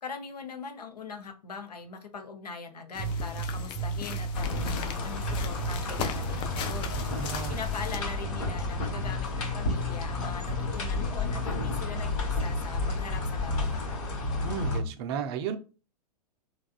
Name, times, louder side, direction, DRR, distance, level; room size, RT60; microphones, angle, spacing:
voice 1, 0.0-7.0 7.5-14.2, left 4 dB, 75° left, 0.7 m, -41 dB
sound 1, 2.9-8.0, left 8 dB, 25° left, 0.4 m, -39 dB
sound 2, 3.0-4.8 5.2-7.8 8.2-10.8 11.2-13.8 14.2-14.9, equal, ahead, 1.1 m, -34 dB
sound 3, 4.3-14.8, left 3 dB, 55° left, 1.4 m, -33 dB
voice 2, 7.0-7.6 14.4-15.6, right 7 dB, 40° right, 0.4 m, -34 dB
3.4 x 2.3 x 2.3 m
figure-of-eight pair, 100°, 20 cm